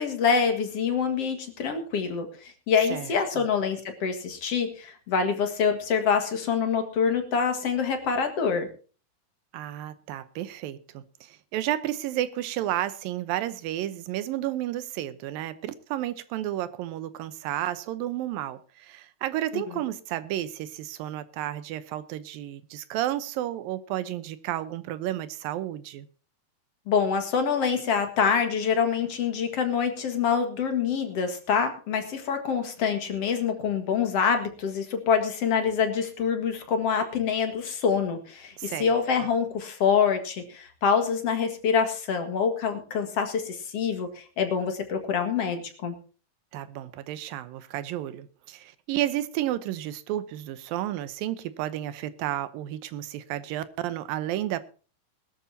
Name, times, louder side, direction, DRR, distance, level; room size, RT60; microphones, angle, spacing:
voice 1, 0.0-8.7 19.5-19.6 26.9-45.9, left 6 dB, 50° left, 2.4 m, -26 dB
voice 2, 2.9-3.4 9.5-26.1 38.6-38.9 46.5-54.6, right 13 dB, 85° right, 2.6 m, -32 dB
21.0 x 12.5 x 2.8 m
omnidirectional pair, 4.0 m